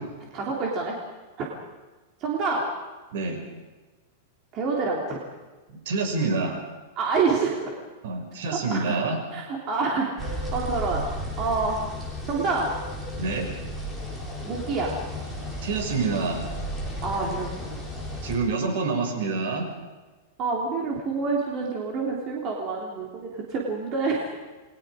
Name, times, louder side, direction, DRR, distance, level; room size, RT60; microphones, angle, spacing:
voice 1, 0.3-0.9 1.4-1.5 2.2-2.6 4.5-5.2 6.9-7.7 8.5-9.0 9.3-11.1 11.4-11.8 12.3-12.7 14.4-14.9 17.0-17.8 20.4-24.3, right 4 dB, 30° right, -2 dB, 3.3 m, -27 dB
voice 2, 5.7-6.6 8.0-9.2 13.2-13.5 15.6-16.5 18.2-19.7, right 4 dB, 65° right, 4 dB, 6.2 m, -27 dB
sound 1, 10.2-18.4, equal, 5° right, 4.2 m, -34 dB
28.5 x 22.0 x 5.1 m, 1.2 s
supercardioid pair, 170°, 0 cm